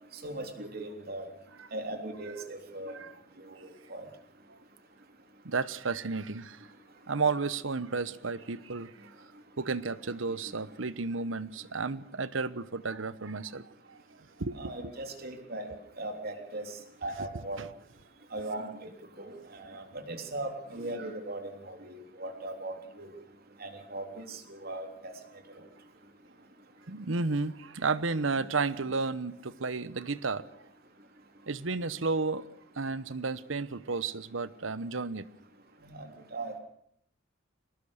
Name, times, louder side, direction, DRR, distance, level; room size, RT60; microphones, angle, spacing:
voice 1, 0.2-1.3 1.7-3.0 3.6-4.1 14.5-16.7 17.0-17.6 18.3-18.7 19.2-23.1 23.6-24.9 35.8-36.1 36.3-36.6, right 2 dB, 50° right, 5 dB, 3.5 m, -39 dB
voice 2, 5.4-6.7 7.1-9.1 9.6-14.0 14.4-14.6 17.6-17.7 26.9-30.5 31.5-32.5 32.8-35.2, right 4 dB, 85° right, 16 dB, 1.0 m, -32 dB
24.0 x 19.0 x 6.6 m, 0.71 s
head